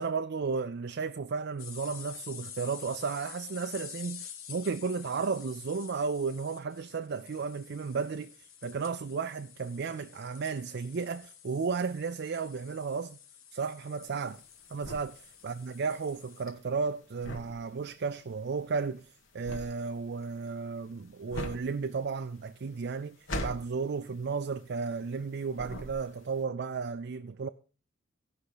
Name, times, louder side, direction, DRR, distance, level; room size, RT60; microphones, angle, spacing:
voice 1, 0.0-13.2 13.5-14.4 14.7-19.1 19.3-23.2 23.4-27.5, right 5 dB, 55° right, 0.4 m, -34 dB
sound 1, 1.6-16.4, left 8 dB, 80° left, 1.4 m, -49 dB
sound 2, 14.1-25.3 25.5-26.4, equal, 65° left, 1.6 m, -41 dB
17.0 x 5.8 x 4.9 m
head